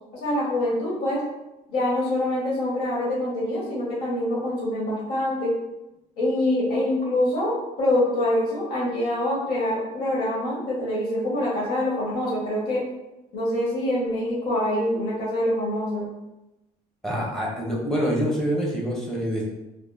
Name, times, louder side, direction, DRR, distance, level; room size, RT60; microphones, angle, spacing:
voice 1, 0.2-1.2 1.7-5.6 6.2-12.8 13.3-16.1, left 1 dB, 80° left, -5 dB, 1.5 m, -25 dB
voice 2, 17.0-19.5, equal, ahead, -3 dB, 0.8 m, -26 dB
5.1 x 2.2 x 2.5 m, 0.97 s
cardioid pair, 165°, 16 cm